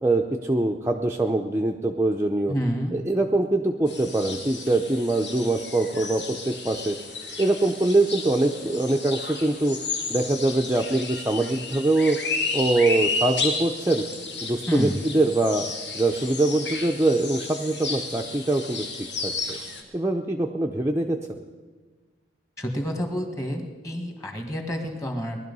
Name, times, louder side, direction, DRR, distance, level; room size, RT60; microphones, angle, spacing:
voice 1, 0.0-2.5 2.9-7.0 7.4-9.8 10.1-12.2 12.5-14.1 14.4-15.7 15.9-18.8 19.2-19.6 19.9-21.4, right 2 dB, 15° right, 1 dB, 0.6 m, -23 dB
voice 2, 2.5-3.0 14.7-15.0 22.6-25.4, equal, 15° left, 4 dB, 1.7 m, -28 dB
sound 1, 3.9-19.8, left 3 dB, 75° left, 2.2 m, -33 dB
19.5 x 11.5 x 5.4 m, 1.4 s
head